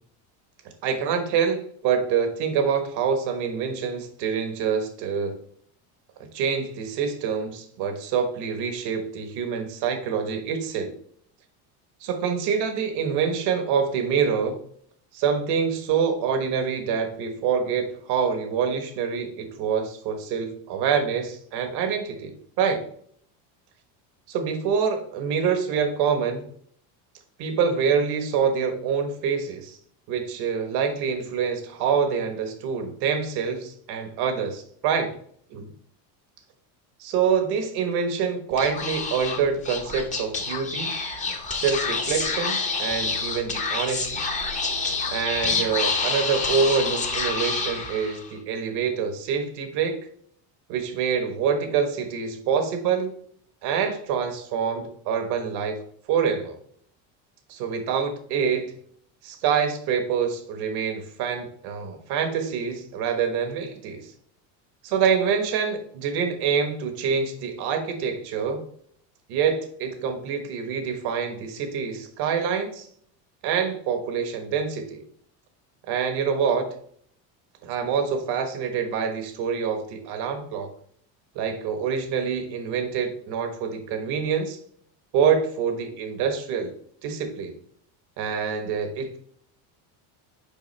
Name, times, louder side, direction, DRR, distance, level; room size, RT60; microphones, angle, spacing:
voice 1, 0.8-5.3 6.3-10.9 12.0-14.6 15.1-22.8 24.3-26.5 27.4-29.8 30.1-35.2 35.5-35.7 37.0-40.9 41.5-44.2 45.1-50.0 50.7-53.1 53.6-55.8 56.1-56.6 57.5-58.7 59.2-64.1 64.8-68.6 69.3-72.9 73.4-75.0 75.9-76.7 77.6-80.7 81.3-84.6 85.1-86.7 87.0-87.5 88.2-89.2, right 6 dB, 60° right, 7 dB, 1.2 m, -26 dB
Speech / Whispering, 38.5-48.3, left 4 dB, 15° left, 0.8 m, -28 dB
7.1 x 4.8 x 3.3 m, 0.62 s
cardioid pair, 145°, 45 cm